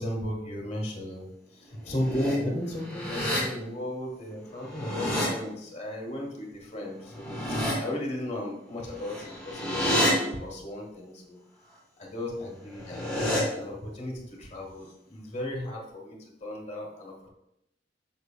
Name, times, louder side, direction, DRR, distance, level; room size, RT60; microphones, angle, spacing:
voice 1, 0.0-11.4 12.0-17.3, left 1 dB, 40° left, -1 dB, 1.5 m, -35 dB
sound 1, 1.8-2.4 2.8-3.4 4.5-5.3 7.1-7.7 9.0-10.1 12.6-13.4, equal, 10° left, 2.1 m, -29 dB
6.8 x 6.3 x 2.2 m, 0.82 s
head